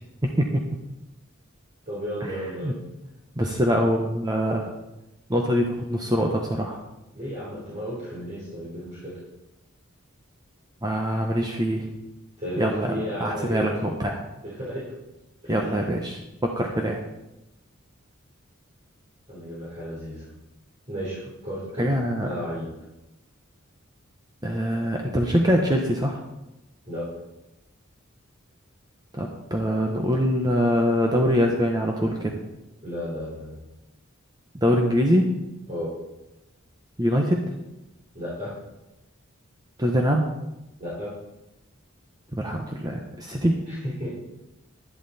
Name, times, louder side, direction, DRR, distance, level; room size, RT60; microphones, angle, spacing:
voice 1, 0.2-0.6 2.2-2.7 3.4-4.7 5.3-6.8 10.8-11.9 12.6-14.2 15.5-17.0 21.8-22.3 24.4-26.2 29.1-32.4 34.5-35.3 37.0-37.5 39.8-40.3 42.3-43.6, equal, 20° right, 1 dB, 1.0 m, -24 dB
voice 2, 1.9-2.8 7.1-9.1 12.4-13.6 14.4-14.8 15.4-15.7 19.3-20.3 20.9-21.9 22.2-22.7 26.9-27.0 32.8-33.6 35.7-35.9 38.1-38.5 40.8-41.1 43.7-44.1, equal, 35° right, -8 dB, 3.7 m, -33 dB
11.5 x 11.0 x 4.2 m, 0.95 s
head